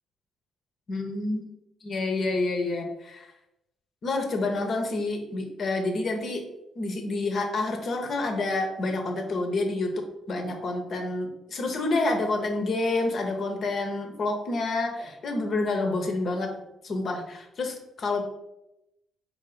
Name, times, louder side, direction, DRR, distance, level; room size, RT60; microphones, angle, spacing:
voice 1, 0.9-1.5 1.8-3.3 4.0-6.4 6.8-9.9 10.3-16.5 16.8-18.2, left 2 dB, 55° left, 3 dB, 0.9 m, -28 dB
4.4 x 2.8 x 4.1 m, 0.89 s
hypercardioid pair, 50°, 0 cm